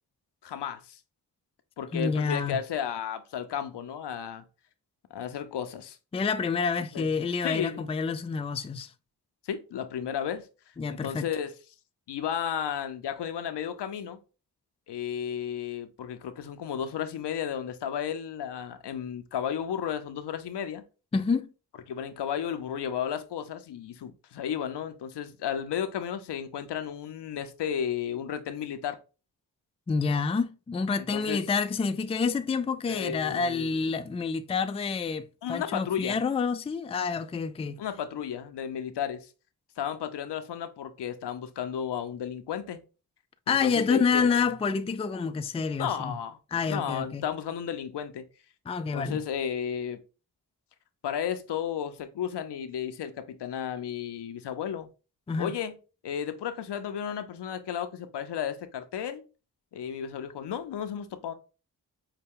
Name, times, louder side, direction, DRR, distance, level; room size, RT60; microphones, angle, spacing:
voice 1, 0.4-1.0 1.8-4.4 5.1-6.0 6.7-7.1 7.4-7.9 9.4-10.5 10.9-11.5 12.1-14.2 14.9-20.8 21.9-29.0 31.0-31.4 32.9-33.8 35.4-36.2 37.8-39.3 39.8-42.8 43.5-44.4 45.8-46.4 46.7-48.3 48.9-50.0 51.0-54.9 55.4-55.7 56.0-59.3 59.7-61.3, left 8 dB, 80° left, 0.7 m, -33 dB
voice 2, 1.9-2.6 6.1-8.9 10.8-11.3 21.1-21.5 29.9-37.8 43.5-46.2 46.5-47.2 48.7-49.2 55.3-55.5, left 5 dB, 15° left, 0.3 m, -28 dB
5.5 x 2.2 x 3.6 m
cardioid pair, 55°, 41 cm